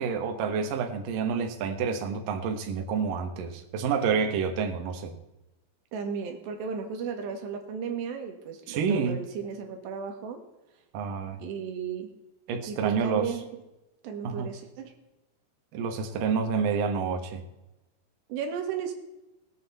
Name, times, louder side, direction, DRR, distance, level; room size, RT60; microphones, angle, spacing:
voice 1, 0.0-5.1 8.7-9.2 10.9-11.4 12.5-13.3 14.2-14.5 15.7-17.4, right 6 dB, 65° right, 4 dB, 2.5 m, -28 dB
voice 2, 5.9-10.4 11.4-12.2 12.7-13.6 14.0-14.9 18.3-18.9, right 6 dB, 80° right, 5 dB, 3.6 m, -34 dB
20.5 x 7.7 x 4.1 m, 0.99 s
omnidirectional pair, 4.9 m